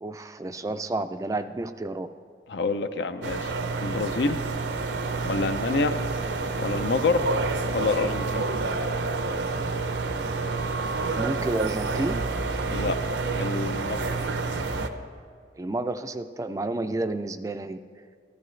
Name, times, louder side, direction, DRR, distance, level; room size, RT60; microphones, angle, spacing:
voice 1, 0.0-2.1 11.2-12.2 15.6-17.8, right 2 dB, 20° right, 10 dB, 0.3 m, -30 dB
voice 2, 2.5-3.5 3.8-4.4 5.2-6.0 6.6-7.2 7.7-8.5 12.7-13.0 13.4-14.1, left 3 dB, 80° left, 9 dB, 0.6 m, -27 dB
sound 1, 3.2-14.9, right 3 dB, 85° right, 0.7 m, -28 dB
14.0 x 13.0 x 3.2 m, 2.1 s
head